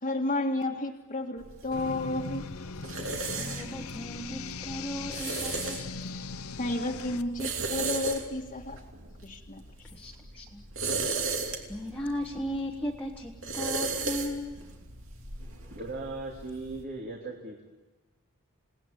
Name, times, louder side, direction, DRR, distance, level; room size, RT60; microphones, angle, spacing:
voice 1, 0.0-2.4 6.6-8.8 9.2-9.6, left 2 dB, 35° left, -1 dB, 1.9 m, -31 dB
sound 1, 1.4-16.8, right 3 dB, 60° right, 2.9 m, -36 dB
sound 2, 1.7-7.2, left 5 dB, 75° left, 0.8 m, -39 dB
voice 2, 3.3-5.9 9.9-10.6 11.7-14.7 15.6-15.7, equal, 5° left, -1 dB, 1.5 m, -37 dB
voice 3, 15.7-17.7, right 2 dB, 45° right, -1 dB, 3.0 m, -38 dB
29.0 x 18.5 x 9.0 m, 1.2 s
head